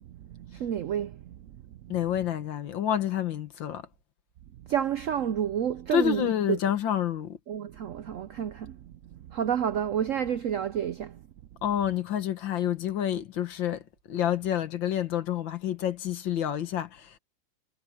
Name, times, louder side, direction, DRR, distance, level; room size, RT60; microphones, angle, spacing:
voice 1, 0.1-1.4 1.8-2.0 4.7-6.6 7.5-8.8 9.1-11.2, right 9 dB, 75° right, 0.7 m, -30 dB
voice 2, 1.9-3.9 5.9-7.4 11.6-13.8 14.1-17.2, left 10 dB, 85° left, 2.0 m, -28 dB
omnidirectional pair, 2.0 m